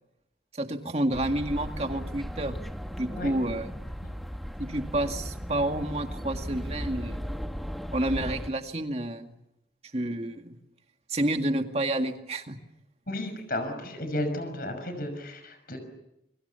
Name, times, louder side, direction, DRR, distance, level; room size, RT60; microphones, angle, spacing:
voice 1, 0.5-2.6 3.0-3.7 4.6-7.2 7.9-9.4 9.9-10.6 11.1-12.6, right 1 dB, 35° right, 5 dB, 2.1 m, -29 dB
sound 1, 1.1-8.5, equal, ahead, 1.5 m, -36 dB
voice 2, 13.1-15.8, left 1 dB, 50° left, 7 dB, 5.8 m, -33 dB
29.5 x 25.5 x 7.1 m, 0.83 s
head